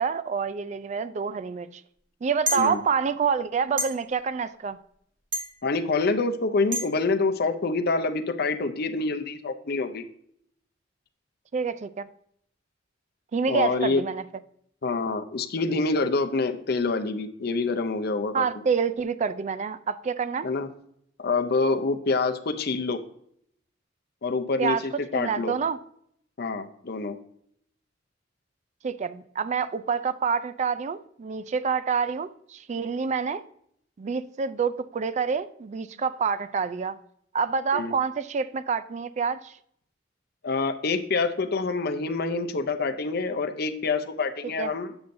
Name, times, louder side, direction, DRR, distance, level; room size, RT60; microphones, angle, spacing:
voice 1, 0.0-1.8 2.2-4.8 11.5-12.0 13.3-14.2 18.3-20.5 24.6-25.8 28.8-33.4 34.0-37.0 37.3-39.6 44.4-44.7, right 6 dB, 40° right, 0.4 m, -27 dB
sound 1, 2.5-2.7 3.8-3.9 5.3-5.5 6.7-6.8, equal, 70° right, 1.6 m, -26 dB
voice 2, 5.6-10.0 13.5-14.0 14.8-18.4 20.4-20.7 21.2-23.0 24.2-25.6 26.4-27.2 37.7-37.9 40.4-44.9, left 3 dB, 55° left, 0.6 m, -26 dB
7.8 x 7.0 x 2.6 m
head